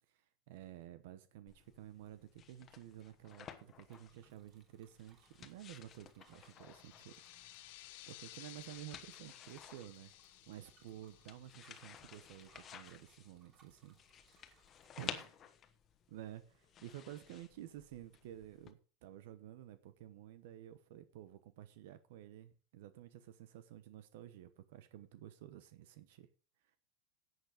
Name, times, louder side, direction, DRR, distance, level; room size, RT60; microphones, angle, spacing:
voice 1, 0.1-7.3 8.1-14.0 14.2-14.5 15.0-15.4 16.1-26.3, right 12 dB, 75° right, 1.1 m, -52 dB
sound 1, 1.5-18.7, left 8 dB, 30° left, 1.3 m, -54 dB
Bicycle, 3.2-14.9, right 5 dB, 30° right, 2.8 m, -72 dB
sound 2, 6.4-12.7, left 17 dB, 65° left, 0.9 m, -57 dB
11.0 x 8.3 x 5.1 m
supercardioid pair, 160°, 0 cm